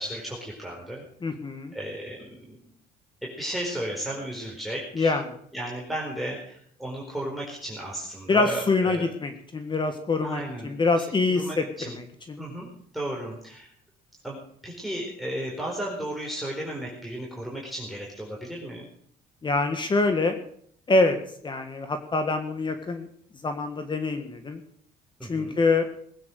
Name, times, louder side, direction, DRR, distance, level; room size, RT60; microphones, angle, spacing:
voice 1, 0.0-1.0 1.7-2.7 3.2-5.1 5.5-9.1 10.2-12.0 12.4-12.7 12.9-13.7 14.2-18.9 25.2-25.6, right 1 dB, ahead, -3 dB, 4.6 m, -34 dB
voice 2, 1.2-1.7 4.9-5.2 8.3-11.6 11.9-12.4 19.4-20.4 20.9-21.2 21.4-23.1 23.4-24.6 25.3-25.8, left 3 dB, 30° left, 7 dB, 1.7 m, -25 dB
20.0 x 9.2 x 6.6 m, 0.64 s
cardioid pair, 110°, 17 cm